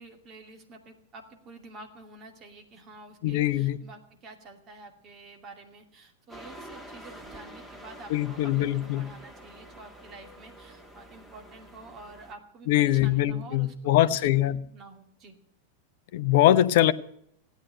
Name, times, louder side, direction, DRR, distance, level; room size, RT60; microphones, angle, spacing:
voice 1, 0.0-15.3, right 2 dB, 30° right, 2.5 m, -49 dB
voice 2, 3.2-3.8 8.1-9.1 12.7-14.6 16.1-16.9, left 13 dB, 50° left, 0.7 m, -22 dB
sound 1, 6.3-12.3, right 1 dB, 10° right, 2.6 m, -47 dB
16.5 x 9.4 x 9.1 m
figure-of-eight pair, 90°, 0 cm